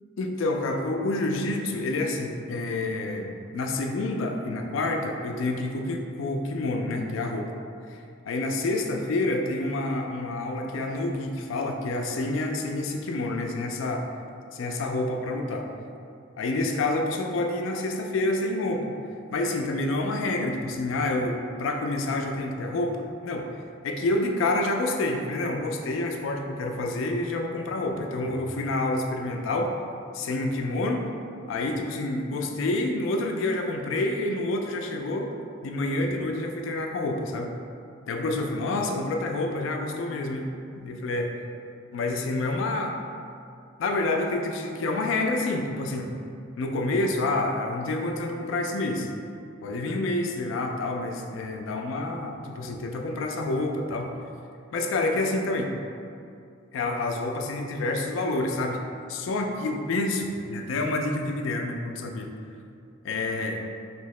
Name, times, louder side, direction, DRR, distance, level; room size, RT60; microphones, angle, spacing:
voice 1, 0.2-7.5 7.9-14.1 14.5-15.7 16.4-18.9 19.3-23.5 23.8-29.7 30.1-31.1 31.5-35.4 35.6-37.6 38.1-41.3 41.9-43.0 43.8-46.1 46.6-49.1 49.6-54.2 54.7-55.7 56.7-62.3 63.0-63.6, left 2 dB, 75° left, 3 dB, 0.3 m, -28 dB
2.9 x 2.7 x 3.1 m, 2.5 s
head